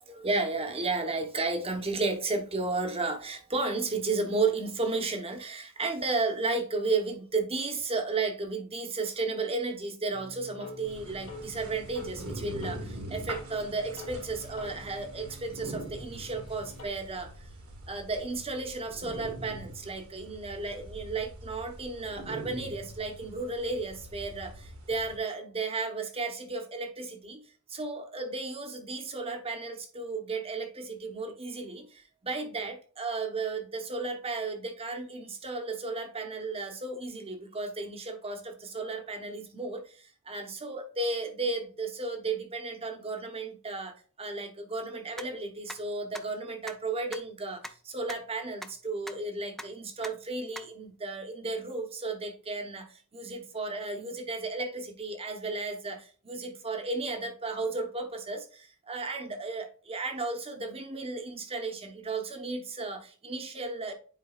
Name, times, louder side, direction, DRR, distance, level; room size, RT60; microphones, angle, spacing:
voice 1, 0.0-17.3 17.9-27.4 27.7-39.8 40.3-52.9 53.1-63.9, right 3 dB, 25° right, 1.0 m, -34 dB
sound 1, 10.1-16.8, left 1 dB, 65° left, 2.5 m, -47 dB
sound 2, 10.9-25.2, right 1 dB, 70° right, 1.6 m, -44 dB
sound 3, 45.2-45.3 45.7-45.8 46.1-46.2 46.7-46.8 47.1-47.2 47.6-47.7 48.1-48.2 48.6-48.7 49.1-49.2 49.6-49.7 50.0-50.1 50.6-50.7, left 1 dB, ahead, 0.4 m, -39 dB
9.8 x 4.5 x 2.4 m
head